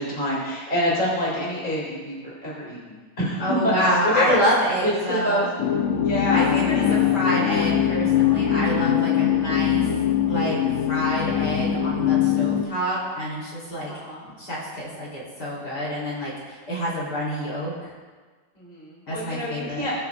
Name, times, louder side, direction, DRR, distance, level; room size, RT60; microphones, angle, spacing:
voice 1, 0.0-3.7 4.0-4.4 4.8-7.4 13.9-14.2 18.6-19.9, equal, 25° left, -6 dB, 3.0 m, -27 dB
voice 2, 3.4-5.5 6.3-9.8 10.3-10.6 10.9-13.9 14.4-16.3 16.7-17.7 19.1-19.9, equal, 60° left, -7 dB, 4.2 m, -27 dB
sound 1, 5.6-12.6, left 9 dB, 80° left, 0.7 m, -22 dB
21.0 x 8.4 x 2.5 m, 1.4 s
omnidirectional pair, 2.1 m